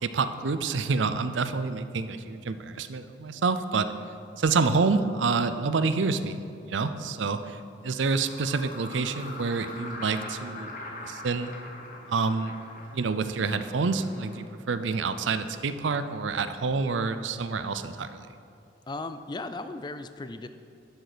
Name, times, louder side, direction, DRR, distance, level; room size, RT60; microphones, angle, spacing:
voice 1, 0.0-3.9 4.4-7.6 7.8-11.5 12.1-12.5 12.9-18.3, right 4 dB, 85° right, 11 dB, 0.5 m, -28 dB
sound 1, 7.7-14.4, left 2 dB, 45° left, 1.3 m, -42 dB
voice 2, 18.9-20.5, left 2 dB, 25° left, 10 dB, 0.4 m, -36 dB
12.0 x 6.5 x 5.0 m, 2.5 s
head